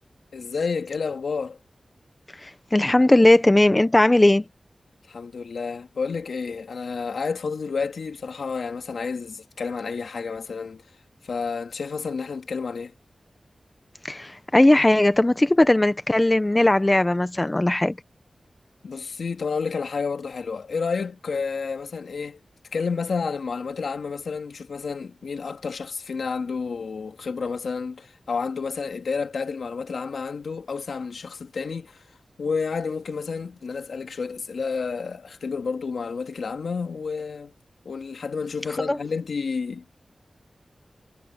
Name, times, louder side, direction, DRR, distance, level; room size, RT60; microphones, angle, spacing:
voice 1, 0.3-1.6 5.1-10.8 11.2-12.9 18.8-22.4 22.7-32.0 32.4-37.5 37.9-39.9, left 5 dB, 90° left, 2.2 m, -30 dB
voice 2, 2.4-4.4 14.0-17.9 38.8-39.0, left 1 dB, 25° left, 1.1 m, -18 dB
cardioid pair, 60°, 0 cm